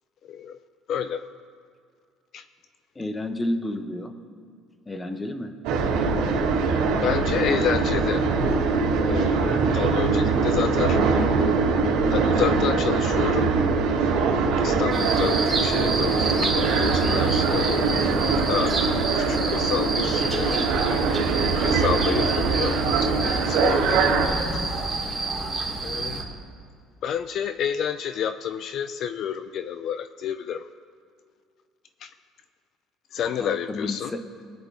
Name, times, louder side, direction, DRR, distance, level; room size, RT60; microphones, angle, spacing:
voice 1, 0.3-0.6 0.9-1.3 2.3-2.4 7.0-8.3 9.1-11.0 12.1-13.5 14.1-18.0 18.5-18.8 19.1-20.6 21.0-21.1 21.6-24.0 24.5-24.9 25.8-26.2 27.0-30.7 32.0-32.1 33.1-34.1, left 8 dB, 55° left, 11 dB, 0.4 m, -29 dB
voice 2, 2.9-4.1 4.9-5.6 33.4-34.2, left 1 dB, 15° left, 8 dB, 0.9 m, -31 dB
sound 1, 5.6-24.2, right 4 dB, 85° right, 2.0 m, -22 dB
sound 2, 14.9-26.2, right 3 dB, 15° right, 2.7 m, -29 dB
19.5 x 10.0 x 3.4 m, 2.3 s
cardioid pair, 125°, 0 cm